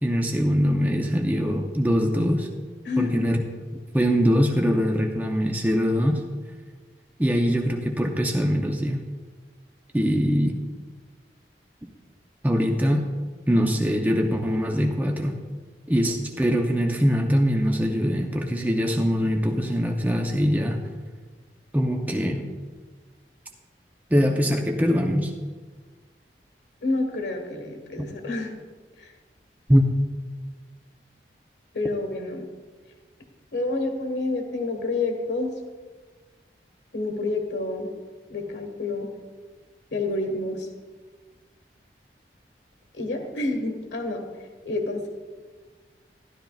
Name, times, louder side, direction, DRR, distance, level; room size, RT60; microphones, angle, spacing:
voice 1, 0.0-2.5 3.0-3.4 3.9-6.2 7.2-9.0 9.9-10.6 12.4-13.1 13.5-15.4 15.9-20.8 21.7-22.5 24.1-25.3 28.0-28.1 29.7-30.0, equal, 10° right, 2 dB, 0.6 m, -22 dB
voice 2, 2.8-3.2 26.8-28.5 29.0-29.1 31.7-32.4 33.5-35.5 36.9-37.9 38.3-39.1 39.9-40.7 42.9-44.2 44.6-45.1, left 2 dB, 85° left, 4 dB, 1.5 m, -28 dB
12.5 x 11.5 x 2.4 m, 1.4 s
head